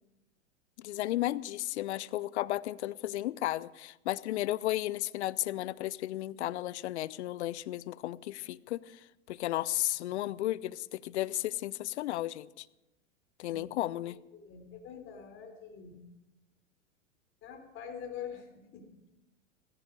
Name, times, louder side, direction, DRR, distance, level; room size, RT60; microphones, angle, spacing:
voice 1, 0.8-8.8 9.3-12.7 13.4-14.2, left 15 dB, 65° left, 0.7 m, -34 dB
voice 2, 13.5-16.0 17.4-19.1, left 7 dB, 35° left, 3.7 m, -45 dB
16.5 x 15.0 x 4.9 m
hypercardioid pair, 105°, 36 cm